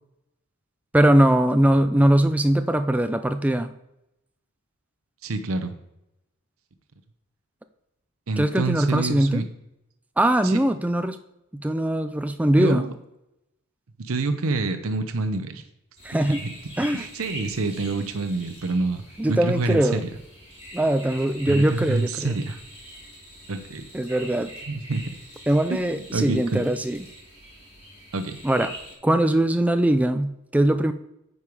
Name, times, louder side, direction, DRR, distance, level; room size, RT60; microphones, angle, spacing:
voice 1, 0.9-3.7 8.4-9.4 10.2-11.2 11.6-12.9 16.0-16.4 16.8-17.1 19.2-20.0 20.7-22.4 23.9-24.5 25.5-27.1 28.4-28.7 29.0-30.9, right 1 dB, 5° right, 9 dB, 0.3 m, -21 dB
voice 2, 5.2-5.7 8.3-9.4 10.4-10.6 12.6-12.9 14.0-15.6 16.4-16.5 16.9-19.0 19.3-20.0 21.5-22.6 23.5-23.8 24.7-25.1 25.7-26.6 28.1-28.4, right 3 dB, 80° right, 9 dB, 0.7 m, -27 dB
sound 1, 16.0-28.9, equal, 30° left, 3.6 m, -43 dB
9.6 x 5.5 x 4.7 m, 0.86 s
head